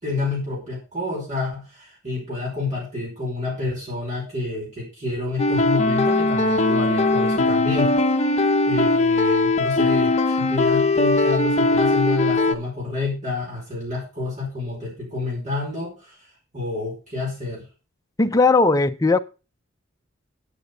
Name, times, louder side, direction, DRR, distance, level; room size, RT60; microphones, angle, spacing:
voice 1, 0.0-16.1 16.5-17.6, left 3 dB, 40° right, 5.6 m, -29 dB
sound 1, 5.4-12.5, left 2 dB, 35° left, 1.0 m, -20 dB
voice 2, 18.2-19.2, left 3 dB, 20° left, 0.6 m, -17 dB
9.2 x 8.2 x 5.4 m
head